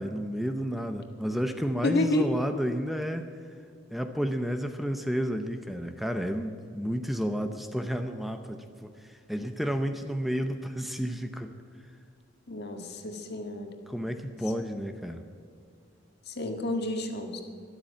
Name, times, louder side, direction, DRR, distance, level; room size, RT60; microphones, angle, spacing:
voice 1, 0.0-3.3 3.9-11.5 13.9-15.2, equal, ahead, 7 dB, 0.7 m, -31 dB
voice 2, 1.8-2.3 12.5-13.7 16.3-17.4, left 1 dB, 60° left, 5 dB, 1.7 m, -30 dB
13.0 x 12.0 x 8.6 m, 2.3 s
head